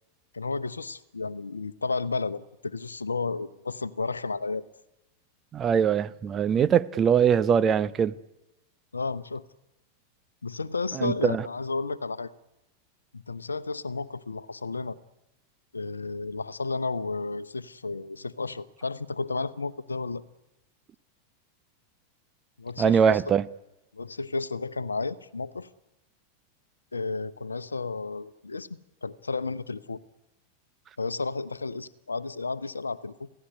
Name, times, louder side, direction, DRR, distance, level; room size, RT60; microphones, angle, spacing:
voice 1, 0.3-4.6 8.9-9.4 10.4-12.3 13.1-15.0 15.7-20.2 22.6-23.2 23.9-25.7 26.9-30.0 31.0-33.3, left 3 dB, 75° left, 0.9 m, -32 dB
voice 2, 5.5-8.1 11.0-11.4 22.8-23.5, right 7 dB, 25° right, 0.8 m, -22 dB
27.5 x 16.5 x 9.9 m
figure-of-eight pair, 90°, 0 cm